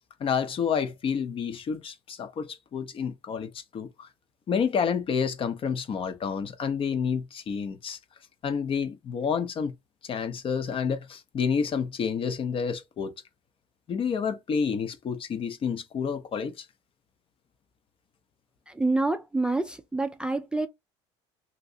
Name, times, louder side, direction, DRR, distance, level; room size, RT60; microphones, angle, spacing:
voice 1, 0.2-4.1 4.5-8.0 8.4-9.7 10.0-13.1 13.9-16.7, left 6 dB, 40° left, 0.6 m, -29 dB
voice 2, 18.7-20.7, right 2 dB, 5° right, 0.4 m, -27 dB
2.9 x 2.7 x 2.7 m
supercardioid pair, 80°, 13 cm